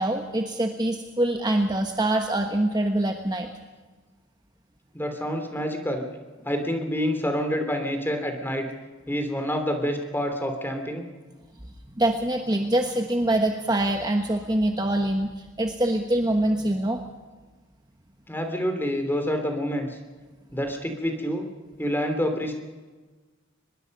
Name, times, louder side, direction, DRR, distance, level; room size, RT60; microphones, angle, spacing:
voice 1, 0.0-3.5 12.0-17.0, right 1 dB, 20° right, 4 dB, 1.3 m, -24 dB
voice 2, 4.9-6.0 6.4-8.7 9.1-11.1 18.3-19.9 20.5-21.5 21.8-22.5, equal, 10° left, 5 dB, 3.0 m, -27 dB
24.5 x 21.0 x 5.4 m, 1.3 s
head